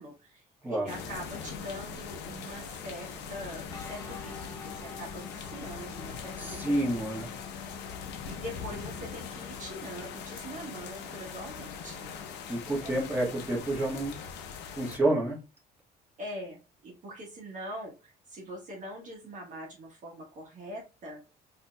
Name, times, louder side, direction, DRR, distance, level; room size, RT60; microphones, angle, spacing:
voice 1, 0.0-6.7 8.2-12.2 12.8-12.9 13.5-13.6 16.2-21.2, equal, 50° right, -1 dB, 1.2 m, -43 dB
sound 1, 0.9-15.0, left 6 dB, 85° left, 0.7 m, -41 dB
Guitar, 3.7-13.6, left 5 dB, 20° left, 0.7 m, -48 dB
voice 2, 6.4-7.3 12.5-14.2 14.8-15.4, right 1 dB, 10° right, -4 dB, 1.6 m, -29 dB
4.2 x 2.8 x 2.2 m, 0.30 s
cardioid pair, 110°, 17 cm